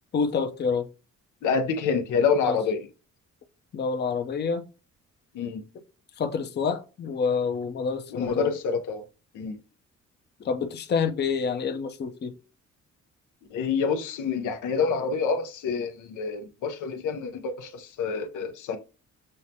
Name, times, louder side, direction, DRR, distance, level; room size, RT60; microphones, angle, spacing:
voice 1, 0.1-0.9 2.4-2.6 3.7-4.6 6.2-8.5 10.4-12.3, left 5 dB, 35° left, 0.6 m, -27 dB
voice 2, 1.4-2.9 5.3-5.6 8.1-9.0 9.3-9.5 13.5-18.8, left 5 dB, 80° left, 0.7 m, -27 dB
6.4 x 2.2 x 2.7 m
cardioid pair, 90°, 30 cm